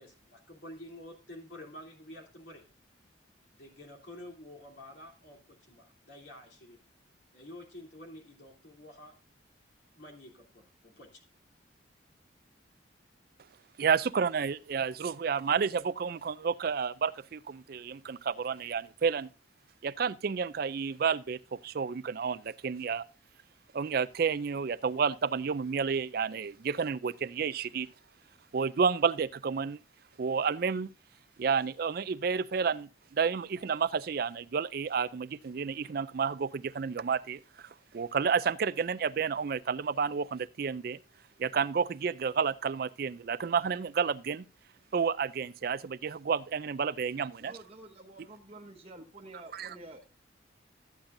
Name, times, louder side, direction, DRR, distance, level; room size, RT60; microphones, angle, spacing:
voice 1, 0.0-2.6 3.5-6.8 7.3-9.1 9.9-11.2, left 1 dB, 60° left, 3.1 m, -49 dB
voice 2, 13.8-19.3 19.8-23.0 23.7-27.9 28.5-29.8 30.2-30.9 31.4-41.0 41.4-44.5 44.9-47.6 49.5-49.8, right 6 dB, 50° right, 0.4 m, -30 dB
voice 3, 47.4-50.1, right 2 dB, 30° right, 1.0 m, -49 dB
13.0 x 8.7 x 2.6 m
head